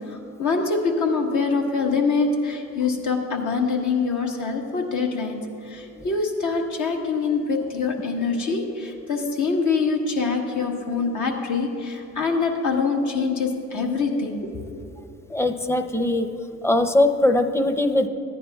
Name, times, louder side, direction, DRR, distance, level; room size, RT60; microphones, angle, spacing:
voice 1, 0.1-14.5, left 4 dB, 65° left, 1 dB, 1.4 m, -24 dB
voice 2, 15.3-16.3 16.6-18.1, left 1 dB, 10° left, 7 dB, 0.7 m, -21 dB
15.0 x 10.0 x 2.4 m, 2.5 s
supercardioid pair, 55°, 32 cm